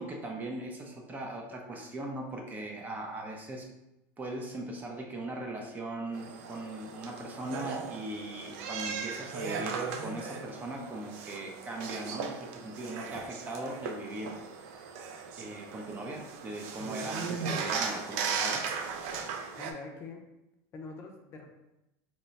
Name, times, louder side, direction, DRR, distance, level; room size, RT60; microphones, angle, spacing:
voice 1, 0.0-3.7 4.2-14.4 15.4-18.6, right 1 dB, 20° right, 1 dB, 0.5 m, -39 dB
sound 1, 6.1-19.7, right 5 dB, 70° right, 0.4 m, -37 dB
voice 2, 19.6-20.2 20.7-21.5, left 3 dB, 35° left, 2 dB, 0.5 m, -44 dB
2.9 x 2.2 x 4.0 m, 0.91 s
supercardioid pair, 140°, 8 cm